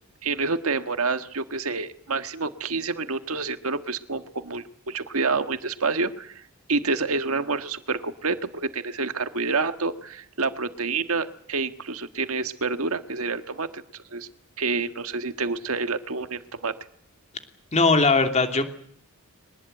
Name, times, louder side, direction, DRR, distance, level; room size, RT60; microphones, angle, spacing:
voice 1, 0.2-6.4 6.7-14.3 14.6-16.7, right 4 dB, 70° right, 9 dB, 1.6 m, -28 dB
voice 2, 17.7-18.6, left 3 dB, 30° left, 6 dB, 2.8 m, -19 dB
22.5 x 19.5 x 9.1 m, 0.65 s
head